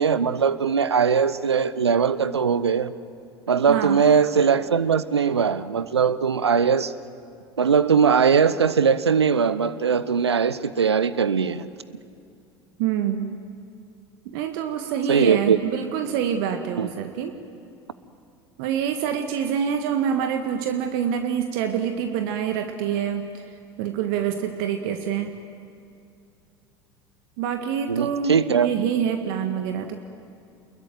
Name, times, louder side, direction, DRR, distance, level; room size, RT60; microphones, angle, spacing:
voice 1, 0.0-2.9 3.5-6.9 7.6-11.7 15.1-15.6 16.8-16.9 27.9-28.7, right 6 dB, 80° right, 16 dB, 0.9 m, -20 dB
voice 2, 3.7-4.0 12.8-13.3 14.3-17.3 18.6-23.4 23.8-25.3 27.4-29.9, right 8 dB, 60° right, 6 dB, 1.7 m, -26 dB
28.0 x 22.0 x 9.3 m, 2.5 s
figure-of-eight pair, 75°, 14 cm